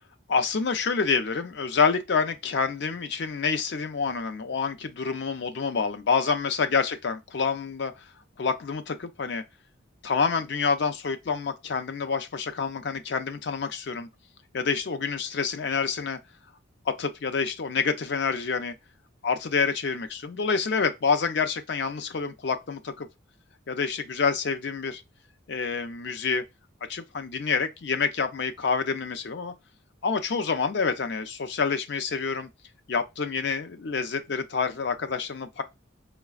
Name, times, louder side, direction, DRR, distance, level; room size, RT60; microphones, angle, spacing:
voice 1, 0.3-8.0 8.4-9.4 10.0-14.1 14.5-16.2 16.9-18.7 19.2-23.1 23.7-25.0 25.5-26.4 26.9-29.5 30.0-32.5 32.9-35.6, left 5 dB, 55° left, 0.4 m, -27 dB
4.8 x 2.2 x 2.3 m
head